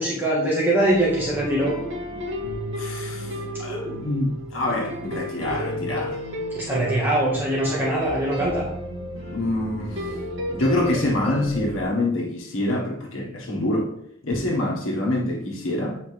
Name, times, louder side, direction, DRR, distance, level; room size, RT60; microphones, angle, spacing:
voice 1, 0.0-1.8 3.7-3.9 6.6-8.7, right 1 dB, 10° right, 1.7 m, -23 dB
sound 1, 0.8-11.8, left 1 dB, 65° right, 2.3 m, -32 dB
voice 2, 2.8-6.2 9.3-10.1 10.5-13.9 14.2-16.0, left 1 dB, 80° left, 1.6 m, -26 dB
9.2 x 5.5 x 3.5 m
head